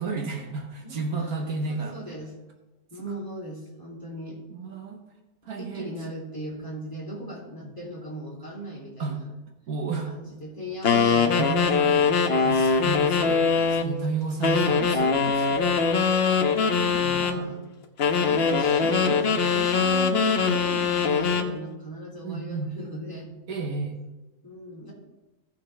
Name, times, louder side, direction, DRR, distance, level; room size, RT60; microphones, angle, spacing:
voice 1, 0.0-2.2 4.5-5.0 5.4-5.9 7.6-7.7 9.0-9.2 9.7-10.1 11.4-12.1 12.4-13.4 13.7-15.6 17.0-17.5 22.2-22.8 23.5-24.0, right 4 dB, 70° right, 2 dB, 1.5 m, -32 dB
voice 2, 0.8-2.3 2.9-4.4 5.6-9.2 10.0-12.3 16.2-17.6 18.2-23.4 24.4-24.9, right 1 dB, 15° left, -4 dB, 3.0 m, -38 dB
sound 1, 10.8-13.9 14.4-17.4 18.0-21.5, left 5 dB, 45° left, 1.0 m, -22 dB
16.5 x 6.0 x 3.3 m, 1.1 s
omnidirectional pair, 1.7 m